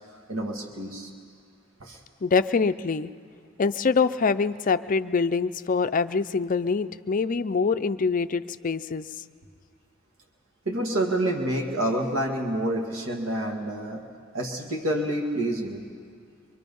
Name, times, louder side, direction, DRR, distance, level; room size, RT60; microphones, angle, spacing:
voice 1, 0.3-1.1 1.8-2.0 10.7-14.0 14.3-15.8, right 1 dB, 70° right, 0 dB, 1.9 m, -28 dB
voice 2, 2.2-3.1 3.6-9.1, left 4 dB, 40° left, 11 dB, 0.5 m, -24 dB
24.5 x 22.5 x 5.4 m, 2.1 s
head